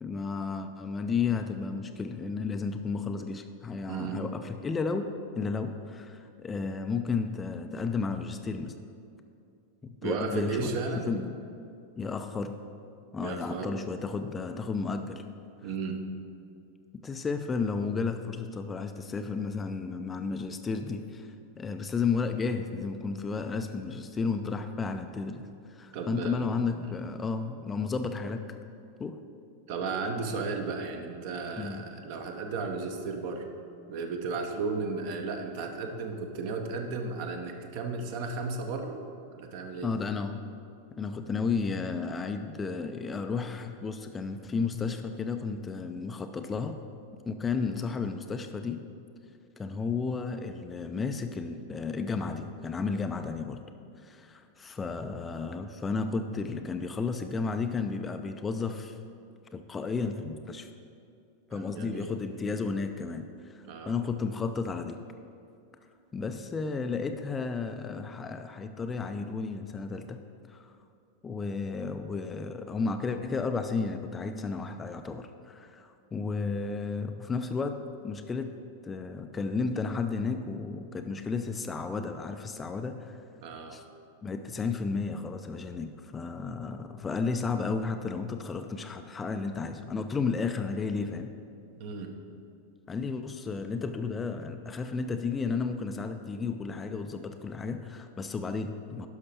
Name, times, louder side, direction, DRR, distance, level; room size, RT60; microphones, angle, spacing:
voice 1, 0.0-8.8 9.8-10.8 11.1-11.4 12.0-12.6 13.1-15.2 17.0-28.5 29.0-29.2 31.6-31.9 39.8-40.4 40.9-46.8 47.3-48.8 49.6-53.6 54.0-59.0 59.5-60.7 61.5-65.0 66.1-70.2 70.5-70.7 71.2-77.8 78.0-78.5 78.8-83.2 83.7-83.8 84.2-91.3 92.9-99.1, left 4 dB, 15° left, 7 dB, 0.4 m, -33 dB
voice 2, 3.9-4.2 10.0-11.2 13.2-13.7 15.6-16.0 25.9-26.5 26.8-27.0 29.7-33.4 33.9-39.0 39.3-39.9 61.5-62.1 63.7-64.0 83.4-83.8 91.8-92.1, right 4 dB, 45° right, 4 dB, 0.9 m, -34 dB
11.5 x 5.8 x 4.4 m, 2.5 s
figure-of-eight pair, 90°, 0 cm